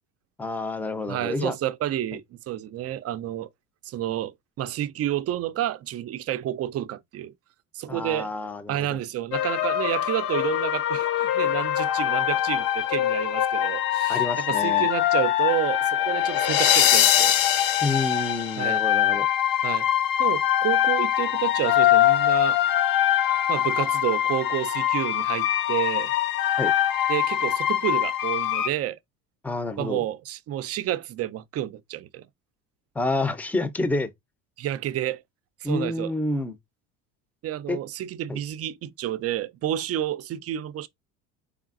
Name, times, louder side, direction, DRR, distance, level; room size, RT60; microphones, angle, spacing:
voice 1, 0.4-1.6 7.9-9.0 14.1-14.9 17.8-19.3 26.6-26.7 29.4-30.0 32.9-34.1 35.6-36.5 37.7-37.8 38.3-38.4, left 2 dB, 5° left, 0.6 m, -28 dB
voice 2, 1.1-3.5 3.8-7.3 7.7-8.3 8.7-17.4 18.6-18.8 19.6-19.9 20.2-22.6 23.5-26.1 27.1-29.0 29.8-32.3 34.6-35.2 35.6-36.1 37.4-40.9, right 12 dB, 40° right, 0.5 m, -30 dB
sound 1, 9.3-28.7, left 12 dB, 60° left, 0.8 m, -23 dB
3.8 x 3.5 x 2.5 m
supercardioid pair, 90°, 38 cm